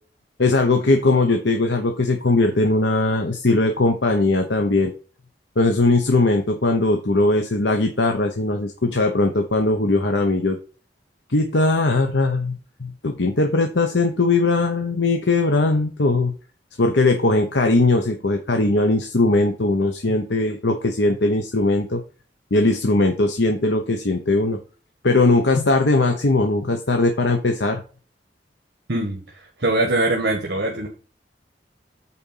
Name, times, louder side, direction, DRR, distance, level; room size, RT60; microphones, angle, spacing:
voice 1, 0.4-4.9 5.6-10.6 11.3-16.3 16.8-22.0 22.5-24.6 25.0-27.8, left 2 dB, 85° left, 5 dB, 1.0 m, -19 dB
voice 2, 28.9-29.2 29.6-30.9, right 2 dB, 65° right, 1 dB, 1.5 m, -22 dB
8.8 x 4.3 x 5.7 m, 0.38 s
head